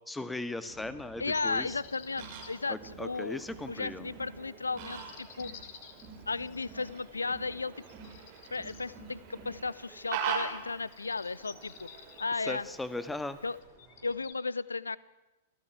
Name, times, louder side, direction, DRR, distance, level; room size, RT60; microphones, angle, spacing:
voice 1, 0.1-1.8 2.7-4.1 12.4-13.4, left 2 dB, 5° left, 13 dB, 1.6 m, -38 dB
Crowd, 0.7-14.2, right 4 dB, 25° right, 7.6 m, -52 dB
voice 2, 1.2-5.7 6.3-7.8 8.5-11.9 12.2-12.7 13.4-13.6 14.0-15.0, left 4 dB, 80° left, 20 dB, 0.9 m, -35 dB
sound 1, 1.3-2.5 4.8-7.0 7.8-8.8 10.1-10.4 10.9-12.3 13.6-14.3, left 8 dB, 50° left, 2.8 m, -51 dB
Fowl, 1.6-13.6, right 7 dB, 45° right, 5.5 m, -43 dB
28.5 x 16.5 x 9.1 m, 1.0 s
figure-of-eight pair, 100°, 0 cm